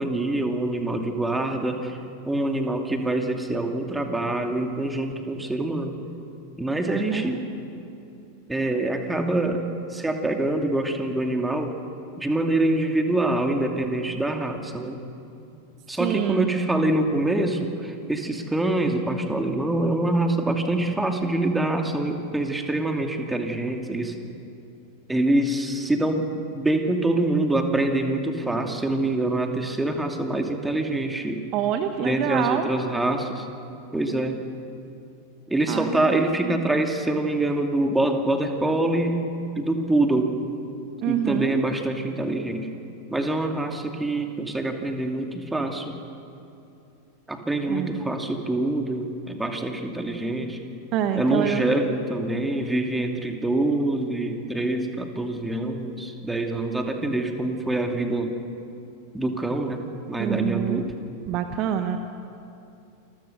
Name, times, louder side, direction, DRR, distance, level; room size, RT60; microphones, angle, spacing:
voice 1, 0.0-2.0 2.2-6.0 6.6-7.5 8.5-11.7 12.2-15.0 15.9-24.1 25.1-26.3 26.5-31.4 32.0-33.5 33.9-34.4 35.5-39.2 39.5-40.4 41.1-42.7 43.1-45.9 47.3-50.6 51.1-58.3 59.1-60.9, right 2 dB, 5° right, 4 dB, 2.5 m, -25 dB
voice 2, 6.9-7.2 16.0-16.5 31.5-32.7 35.7-36.7 41.0-41.6 47.7-48.0 50.9-51.7 60.2-60.8 61.3-62.0, right 10 dB, 40° right, 7 dB, 1.3 m, -26 dB
28.5 x 22.5 x 6.7 m, 2.7 s
figure-of-eight pair, 90°, 0 cm